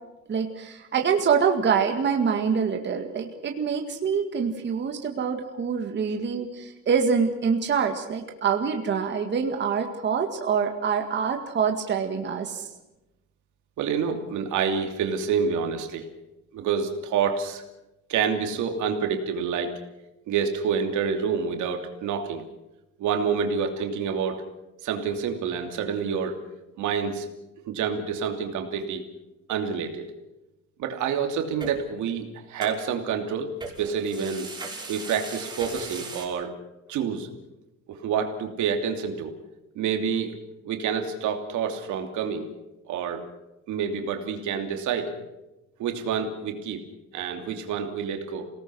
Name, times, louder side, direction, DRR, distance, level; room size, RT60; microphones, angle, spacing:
voice 1, 0.3-12.7, right 6 dB, 40° right, 4 dB, 2.0 m, -25 dB
voice 2, 13.8-16.1 16.5-17.6 18.1-19.7 20.3-22.4 23.0-24.4 24.8-26.4 26.8-27.3 27.6-29.0 29.5-30.0 30.8-33.5 33.8-34.5 34.9-36.5 36.9-37.3 37.9-39.3 39.7-40.3 40.6-42.5 42.9-43.2 43.7-45.2 45.8-46.8 47.1-48.4, right 6 dB, 80° right, 4 dB, 2.9 m, -28 dB
sound 1, 31.6-31.7 32.6-32.8 33.6-36.3, right 3 dB, 15° right, 5.8 m, -37 dB
27.5 x 18.5 x 6.3 m, 0.96 s
cardioid pair, 150°, 29 cm